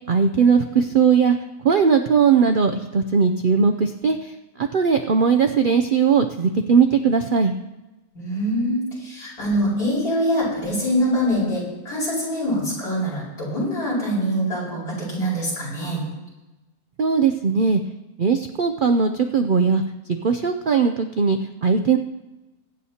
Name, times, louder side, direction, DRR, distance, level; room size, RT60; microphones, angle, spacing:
voice 1, 0.1-1.4 1.6-7.5 17.0-17.8 18.2-19.8 20.2-22.0, right 6 dB, 70° right, 6 dB, 0.4 m, -19 dB
voice 2, 8.2-16.0, equal, 90° left, -6 dB, 5.4 m, -24 dB
22.5 x 9.4 x 2.8 m, 1.1 s
omnidirectional pair, 1.6 m